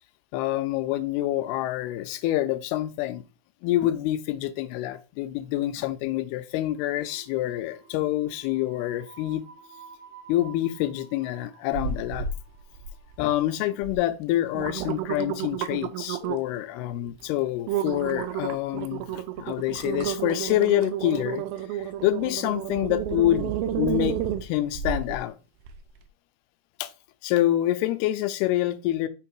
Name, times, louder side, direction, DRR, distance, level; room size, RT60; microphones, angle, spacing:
voice 1, 0.3-3.3 3.6-9.4 10.3-12.3 13.2-21.4 21.7-25.4 26.8-26.9 27.2-29.1, left 14 dB, 85° left, 2.5 m, -27 dB
sound 1, 6.6-13.9, right 4 dB, 55° right, 0.7 m, -52 dB
sound 2, 11.7-12.4 12.8-13.3 13.8-14.0 14.4-16.6 17.1-17.2 17.7-25.2 25.7-25.8, right 9 dB, 80° right, 2.3 m, -31 dB
6.0 x 3.5 x 4.6 m
omnidirectional pair, 4.5 m